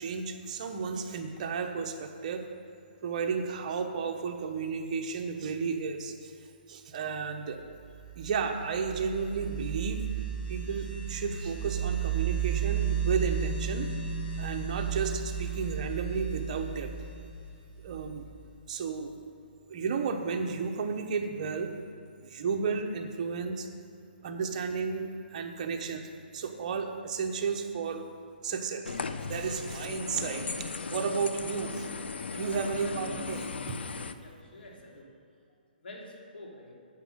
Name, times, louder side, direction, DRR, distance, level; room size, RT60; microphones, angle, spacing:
voice 1, 0.0-2.4 3.0-6.3 6.7-7.6 8.2-10.0 10.5-13.9 14.4-16.9 17.8-18.3 18.7-19.1 19.7-21.7 22.2-23.7 24.2-26.1 26.3-28.0 28.4-31.9 32.3-33.5, right 5 dB, 40° right, 4 dB, 1.1 m, -33 dB
sound 1, 7.8-18.4, right 8 dB, 20° left, 1.8 m, -33 dB
sound 2, 28.8-34.1, left 4 dB, 90° left, 0.7 m, -37 dB
voice 2, 34.2-35.0 35.8-36.7, left 2 dB, 75° left, -1 dB, 3.0 m, -47 dB
10.0 x 8.2 x 6.4 m, 2.4 s
hypercardioid pair, 160°, 6 cm